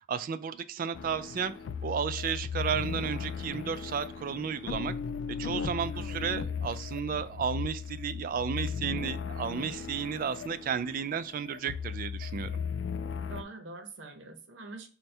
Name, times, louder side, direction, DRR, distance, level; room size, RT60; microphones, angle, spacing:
voice 1, 0.1-1.5 1.8-4.9 5.3-12.6, right 7 dB, 45° right, 0.3 m, -33 dB
sound 1, 0.9-13.4, left 6 dB, 80° left, 0.3 m, -37 dB
voice 2, 5.9-6.3 13.3-14.9, right 3 dB, 70° right, 0.8 m, -45 dB
4.2 x 2.2 x 3.3 m
head